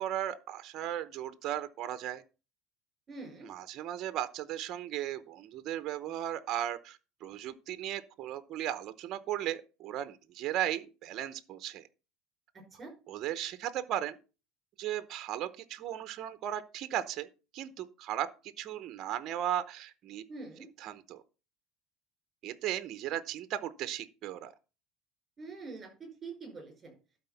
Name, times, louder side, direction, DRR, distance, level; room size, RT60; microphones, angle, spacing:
voice 1, 0.0-2.2 3.4-11.8 13.1-14.2 14.8-17.3 17.5-20.2 20.8-21.2 22.4-24.5, right 11 dB, 40° right, 0.8 m, -36 dB
voice 2, 3.1-3.5 12.8-12.9 20.3-20.7 25.4-26.9, right 3 dB, 20° right, 5.3 m, -45 dB
12.0 x 4.2 x 5.7 m
cardioid pair, 160°, 0 cm